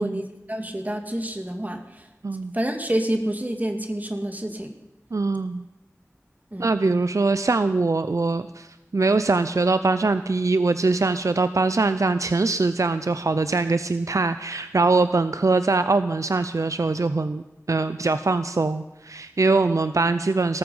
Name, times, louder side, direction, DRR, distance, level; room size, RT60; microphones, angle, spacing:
voice 1, 0.0-2.1 2.5-4.7 6.5-6.7, right 1 dB, 30° right, 5 dB, 2.1 m, -28 dB
voice 2, 5.1-5.6 6.6-20.6, right 3 dB, 80° right, 11 dB, 0.5 m, -22 dB
18.5 x 14.0 x 5.5 m, 0.95 s
wide cardioid pair, 45°, 5 cm